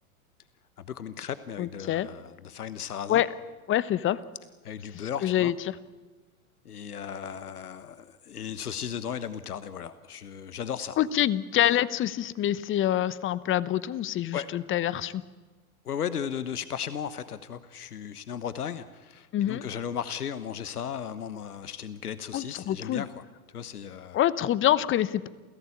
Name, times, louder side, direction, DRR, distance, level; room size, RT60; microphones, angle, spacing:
voice 1, 0.9-3.2 4.6-5.5 6.6-11.0 14.3-14.5 15.8-23.2 23.5-24.2, left 8 dB, 85° left, 14 dB, 1.2 m, -36 dB
voice 2, 1.6-2.1 3.1-3.3 3.7-4.2 5.2-5.5 11.0-15.1 19.3-19.6 22.3-23.0 24.1-25.3, left 12 dB, 25° left, 18 dB, 1.0 m, -26 dB
28.5 x 16.5 x 8.6 m, 1.4 s
hypercardioid pair, 100°, 44 cm